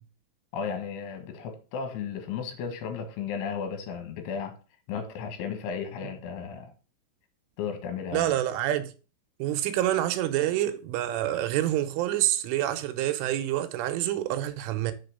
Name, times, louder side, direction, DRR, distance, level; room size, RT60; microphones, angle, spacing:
voice 1, 0.5-4.6 4.9-6.7 7.6-8.3, left 6 dB, 75° left, 3.7 m, -34 dB
voice 2, 8.1-8.9 9.4-14.9, right 13 dB, 85° right, 3.2 m, -27 dB
6.9 x 5.5 x 6.6 m
omnidirectional pair, 5.7 m